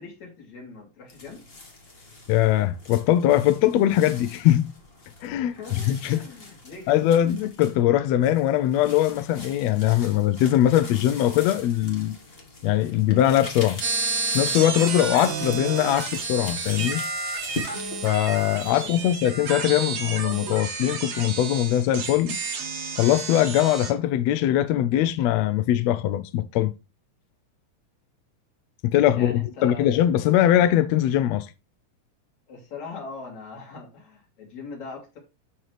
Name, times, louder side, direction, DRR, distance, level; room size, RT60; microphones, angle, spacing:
voice 1, 0.0-1.4 5.5-7.1 18.8-19.2 29.1-29.9 32.5-35.2, left 4 dB, 65° left, 4.2 m, -41 dB
sound 1, 1.1-18.9, left 2 dB, 25° left, 1.3 m, -43 dB
voice 2, 2.3-4.7 5.2-5.5 5.9-6.2 6.9-12.1 12.6-13.8 14.3-17.0 18.0-22.4 23.0-26.7 28.8-31.5, left 12 dB, 80° left, 1.6 m, -21 dB
sound 2, 13.8-23.9, right 4 dB, 65° right, 3.1 m, -31 dB
12.5 x 4.4 x 3.3 m
omnidirectional pair, 3.5 m